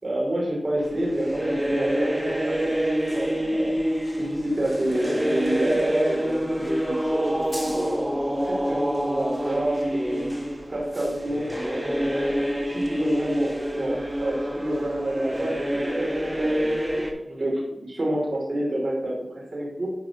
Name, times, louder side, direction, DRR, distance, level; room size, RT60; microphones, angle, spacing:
voice 1, 0.0-3.8 4.2-8.0 8.5-10.3 10.7-11.5 12.0-19.9, right 1 dB, 60° right, -3 dB, 3.0 m, -28 dB
sound 1, 0.8-17.1, equal, 15° right, 1.6 m, -27 dB
10.0 x 5.5 x 3.0 m, 0.92 s
cardioid pair, 45°, 0 cm